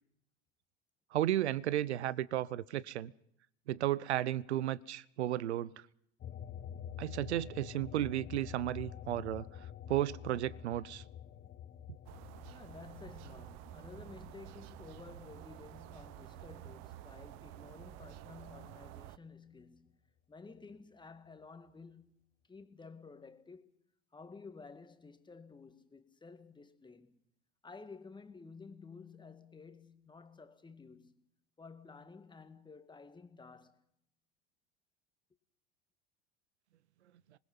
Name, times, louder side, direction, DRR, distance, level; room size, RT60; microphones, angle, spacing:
voice 1, 1.1-3.1 3.7-5.8 7.0-9.5 9.9-11.0, right 13 dB, 80° right, 0.9 m, -34 dB
sound 1, 6.2-17.1 17.5-18.9, left 9 dB, 30° left, 1.2 m, -49 dB
sound 2, 12.1-19.2, right 17 dB, 50° right, 0.9 m, -51 dB
voice 2, 12.5-20.0 20.3-22.2 22.5-23.7 24.1-27.2 27.6-31.3 31.6-33.8, left 4 dB, 15° left, 1.9 m, -53 dB
26.0 x 20.5 x 5.6 m
hypercardioid pair, 85°, 33 cm